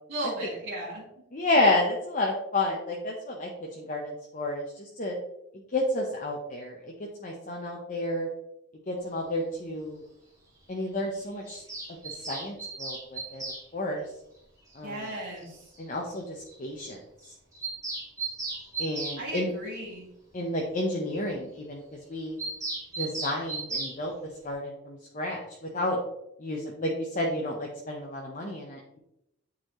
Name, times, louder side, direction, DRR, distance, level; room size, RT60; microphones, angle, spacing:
voice 1, 0.1-1.0 14.8-15.7 19.2-20.1, right 1 dB, 65° right, -9 dB, 2.1 m, -35 dB
voice 2, 1.3-5.1 5.7-6.9 7.2-8.3 8.9-10.0 10.7-11.6 12.2-13.4 13.7-14.0 14.7-15.1 15.8-17.0 18.8-19.5 20.3-21.8 22.1-22.4 23.0-24.1 24.4-25.4 25.7-26.0 26.4-29.0, left 1 dB, 40° left, -1 dB, 0.8 m, -30 dB
Bird vocalization bird call bird song, 11.5-13.6 15.1-15.2 15.4-15.5 15.7-15.8 16.1-16.2 16.5-16.6 16.8-17.0 17.2-19.2 22.4-24.0, right 3 dB, 15° right, 1.8 m, -35 dB
9.1 x 4.1 x 3.1 m, 0.84 s
head